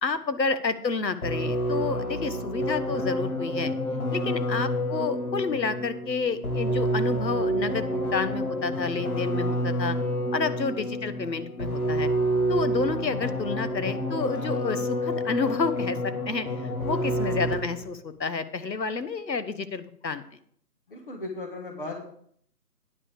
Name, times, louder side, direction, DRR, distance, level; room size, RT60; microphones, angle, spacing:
voice 1, 0.0-3.7 4.1-10.0 10.3-12.1 12.5-16.5 16.8-20.2, left 4 dB, 90° left, 11 dB, 1.2 m, -30 dB
sound 1, 1.2-17.9, equal, 60° left, 2.0 m, -28 dB
voice 2, 20.9-22.0, left 2 dB, 30° left, 2 dB, 1.5 m, -37 dB
9.7 x 5.6 x 6.6 m, 0.63 s
figure-of-eight pair, 170°, 49 cm